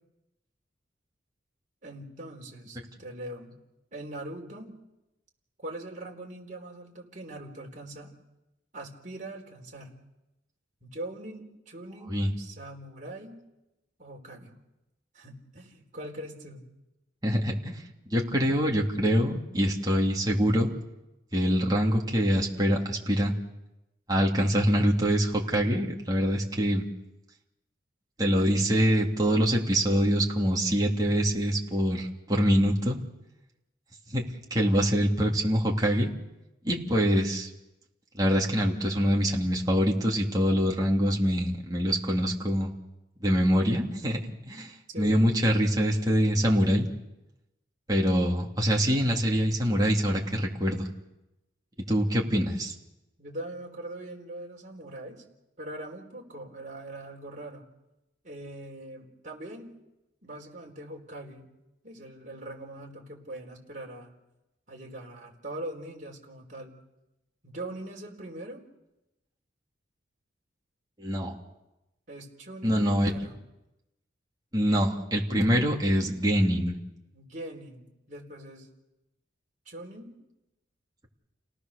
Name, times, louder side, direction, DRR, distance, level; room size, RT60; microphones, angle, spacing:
voice 1, 1.8-3.6 3.9-4.7 5.6-8.1 8.7-10.0 10.8-13.4 14.0-14.6 15.1-16.7 44.9-45.3 53.2-55.2 55.6-57.7 58.2-59.7 60.2-61.5 61.8-64.1 64.7-66.8 67.4-68.6 72.1-73.4 77.1-78.7 79.7-80.1, right 1 dB, 40° right, -1 dB, 4.2 m, -42 dB
voice 2, 17.2-17.8 18.1-20.7 21.3-23.3 24.1-26.8 28.2-33.0 34.1-34.2 34.5-36.1 36.6-37.5 38.1-42.7 43.2-46.9 47.9-50.9 51.9-52.7 71.0-71.4 72.6-73.1 74.5-76.8, equal, 20° right, -1 dB, 2.9 m, -25 dB
29.5 x 18.5 x 6.7 m, 0.96 s
head